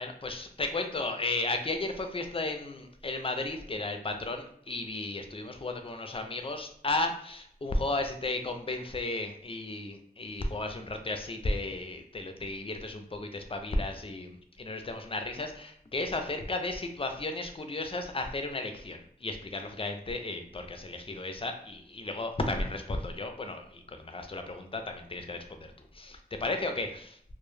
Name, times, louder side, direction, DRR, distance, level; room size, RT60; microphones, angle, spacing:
voice 1, 0.0-27.2, left 2 dB, 35° left, 6 dB, 0.4 m, -34 dB
2.1 x 2.0 x 3.1 m, 0.65 s
wide cardioid pair, 40°, 16 cm